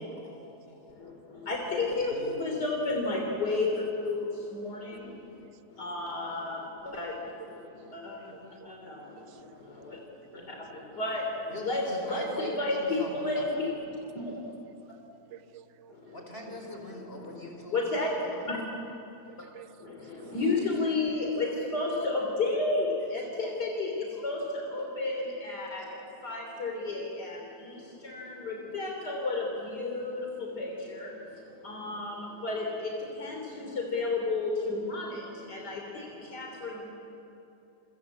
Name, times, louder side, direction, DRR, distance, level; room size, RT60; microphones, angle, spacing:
voice 1, 1.5-2.1 2.4-3.7 4.0-4.2 5.8-6.6 7.0-7.1 11.0-11.2 11.7-11.8 12.1-13.7 17.7-18.1 20.3-22.9 23.1-23.9 24.2-24.4 24.7-25.8 26.2-27.0 28.1-29.4 29.8-30.2 30.6-30.7 31.0-31.1 31.6-32.1 32.4-32.7 33.2-33.3 33.9-35.1 35.5-35.8 36.3-36.8, left 3 dB, 80° left, 3.9 m, -30 dB
voice 2, 2.0-2.4 11.5-13.5 16.1-17.9 24.1-24.3, left 1 dB, 35° left, 5.6 m, -41 dB
voice 3, 8.3-8.7 9.2-9.4 10.3-10.4 10.7-10.8 15.3-15.9 19.3-19.8 20.2-20.3, right 10 dB, 50° right, 1.1 m, -51 dB
28.5 x 25.0 x 8.4 m
omnidirectional pair, 1.7 m